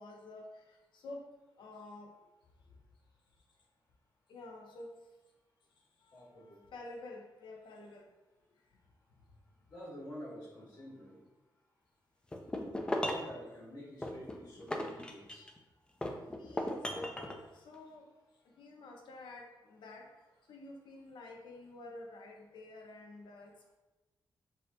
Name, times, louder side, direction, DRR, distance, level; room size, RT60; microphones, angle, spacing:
voice 1, 0.0-1.3 1.6-2.1 2.7-2.8 4.3-4.9 6.0-8.1 16.4-18.1 18.5-20.1 20.5-23.7, left 2 dB, 80° left, 1 dB, 0.7 m, -50 dB
voice 2, 6.1-6.6 9.7-11.2 13.0-15.5, equal, 55° left, -5 dB, 1.5 m, -49 dB
sound 1, 12.3-13.3 14.0-15.6 16.0-17.4, left 1 dB, 10° left, 0.3 m, -37 dB
6.4 x 2.7 x 2.6 m, 1.1 s
wide cardioid pair, 180°, 8 cm